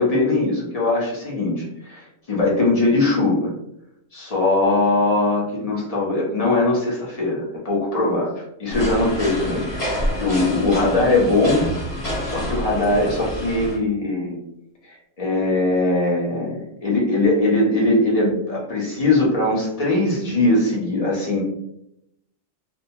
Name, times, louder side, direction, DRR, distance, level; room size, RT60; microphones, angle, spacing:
voice 1, 0.0-3.5 4.1-11.6 12.2-14.4 15.2-21.4, left 2 dB, 50° left, -3 dB, 0.4 m, -21 dB
sound 1, 8.7-13.8, equal, 30° left, 0.9 m, -28 dB
2.4 x 2.1 x 2.7 m, 0.79 s
omnidirectional pair, 1.4 m